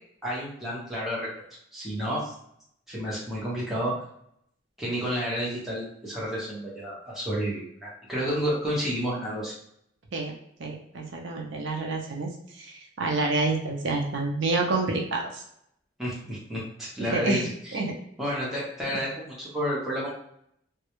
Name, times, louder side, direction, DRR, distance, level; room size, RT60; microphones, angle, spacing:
voice 1, 0.2-1.3 1.7-2.3 2.9-3.9 4.8-9.5 16.0-17.8 18.2-20.1, equal, ahead, -7 dB, 0.7 m, -30 dB
voice 2, 10.6-12.3 12.6-15.4 17.1-17.4 17.7-17.9, right 3 dB, 70° right, 0 dB, 0.5 m, -28 dB
2.3 x 2.0 x 2.9 m, 0.72 s
head